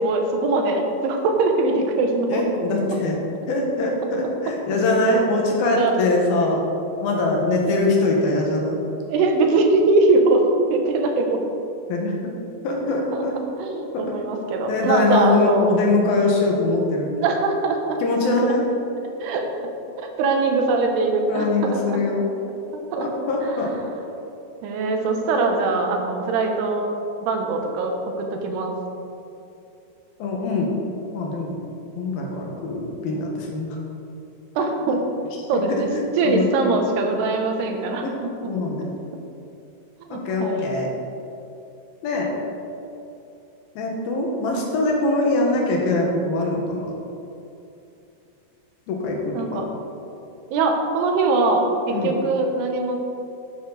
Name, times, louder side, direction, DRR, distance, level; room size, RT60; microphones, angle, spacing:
voice 1, 0.0-2.4 2.9-3.0 5.6-6.0 9.1-11.4 13.1-13.2 13.6-15.7 17.2-18.0 18.3-18.6 19.0-19.5 20.0-22.0 22.7-23.1 24.6-27.0 27.2-28.8 34.6-35.0 35.5-35.9 36.2-38.0 40.1-40.6 49.3-49.7 50.5-53.0, right 3 dB, 85° right, 3 dB, 3.2 m, -22 dB
voice 2, 2.3-3.2 3.5-6.6 7.0-8.8 11.9-12.1 12.6-13.3 13.9-14.0 14.7-17.1 18.0-18.6 21.3-22.2 23.0-23.7 30.2-30.7 31.1-31.6 32.0-33.8 34.9-35.0 35.7-36.5 38.0-38.1 38.4-38.9 40.3-40.9 42.0-42.3 43.8-46.9 48.9-49.6 51.9-52.2, left 2 dB, 70° left, -1 dB, 3.2 m, -22 dB
12.0 x 9.5 x 4.1 m, 2.8 s
omnidirectional pair, 4.6 m